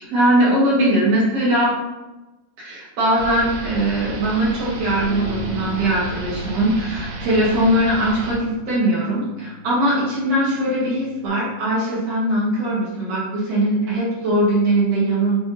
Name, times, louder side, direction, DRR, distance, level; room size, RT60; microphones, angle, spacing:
voice 1, 0.1-1.7 2.6-15.4, right 1 dB, 75° right, -7 dB, 1.4 m, -20 dB
sound 1, 3.1-8.4, right 1 dB, 55° right, 2.6 m, -33 dB
Bass guitar, 5.0-11.3, equal, 85° left, 2.5 m, -38 dB
6.9 x 3.5 x 4.0 m, 1.1 s
omnidirectional pair, 5.6 m